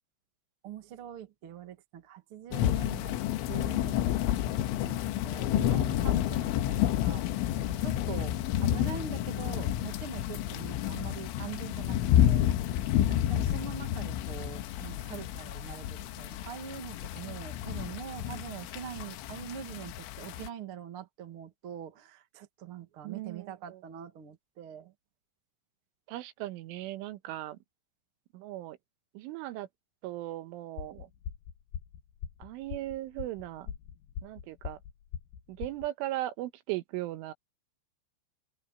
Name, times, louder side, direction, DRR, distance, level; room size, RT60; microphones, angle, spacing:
voice 1, 0.6-3.2 3.4-7.2 7.6-12.4 13.1-24.9, right 8 dB, 55° right, 1.5 m, -44 dB
sound 1, 2.5-20.5, left 12 dB, 85° left, 3.5 m, -30 dB
voice 2, 5.5-6.3 23.0-23.8 26.1-27.6 28.3-28.8 29.2-29.7 30.0-31.1 32.4-33.7 34.2-34.8 35.5-37.3, right 15 dB, 85° right, 3.6 m, -38 dB
sound 2, 30.8-35.9, left 8 dB, 65° left, 2.6 m, -41 dB
omnidirectional pair, 5.5 m